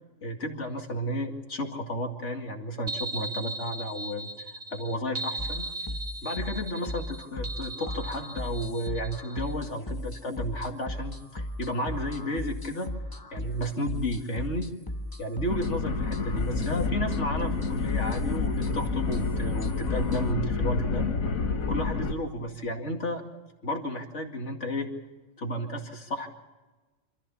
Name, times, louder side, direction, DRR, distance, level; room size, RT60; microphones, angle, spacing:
voice 1, 0.2-5.7 6.2-12.9 13.3-14.7 15.2-21.0 21.7-23.2 23.6-24.9 25.4-26.3, equal, 60° left, 3 dB, 2.6 m, -32 dB
sound 1, 2.9-9.5, right 2 dB, 40° right, 1.1 m, -38 dB
sound 2, 5.4-20.3, left 1 dB, 15° left, 1.1 m, -37 dB
sound 3, 15.5-22.1, left 4 dB, 80° left, 1.9 m, -29 dB
26.5 x 14.5 x 7.1 m, 1.3 s
omnidirectional pair, 1.4 m